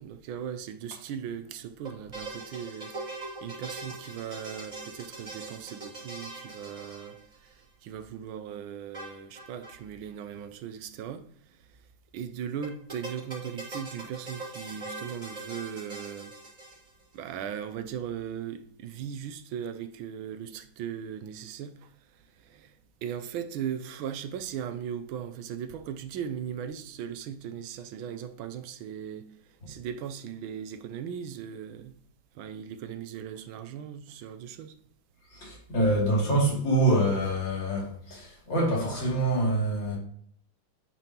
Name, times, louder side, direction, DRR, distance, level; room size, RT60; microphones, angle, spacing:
voice 1, 0.0-7.5 7.8-11.7 12.1-16.3 17.1-21.9 22.4-22.7 23.0-29.3 29.7-32.0 32.3-34.7, right 8 dB, 85° right, 1.5 m, -38 dB
sound 1, 1.8-7.6 8.9-9.8 10.0-10.1 10.3-10.4 12.6-17.1, right 2 dB, 20° right, 2.5 m, -41 dB
voice 2, 35.3-40.0, right 1 dB, 65° left, 3.3 m, -26 dB
9.6 x 5.3 x 2.9 m
omnidirectional pair, 2.2 m